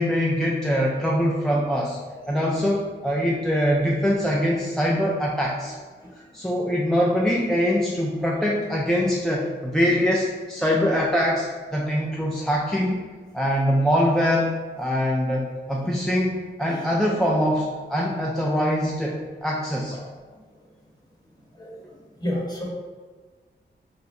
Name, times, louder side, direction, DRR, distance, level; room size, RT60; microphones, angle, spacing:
voice 1, 0.0-2.0 2.3-5.7 6.3-13.0 13.3-14.5 14.8-19.9, equal, ahead, -3 dB, 0.3 m, -23 dB
voice 2, 22.2-22.6, equal, 20° left, -4 dB, 1.0 m, -30 dB
2.6 x 2.0 x 3.6 m, 1.4 s
cardioid pair, 50°, 20 cm